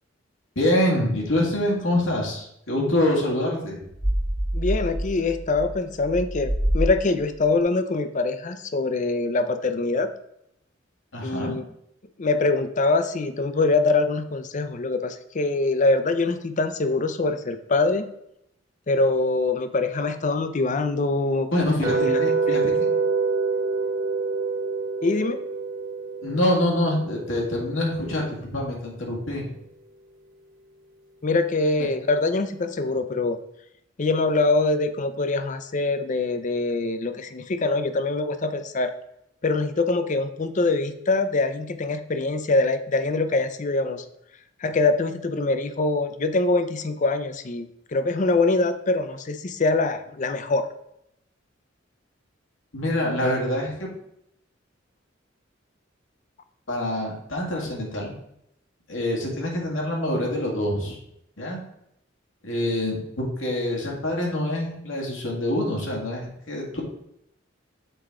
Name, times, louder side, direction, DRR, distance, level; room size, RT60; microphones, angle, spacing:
voice 1, 0.6-3.8 11.1-11.5 21.5-22.9 26.2-29.5 52.7-53.9 56.7-58.1 58.9-61.0 61.4-61.6 62.4-66.8, left 1 dB, 90° left, -2 dB, 1.9 m, -25 dB
sound 1, 4.0-7.4, equal, 10° right, 0.9 m, -26 dB
voice 2, 4.5-10.1 11.2-11.6 12.2-18.1 18.9-21.5 21.9-22.6 25.0-25.4 31.2-33.4 34.0-38.9 39.4-44.0 44.6-50.6, left 3 dB, 40° left, 10 dB, 0.5 m, -24 dB
sound 2, 21.8-27.9, right 4 dB, 45° right, 1.5 m, -26 dB
6.8 x 4.6 x 3.6 m, 0.78 s
head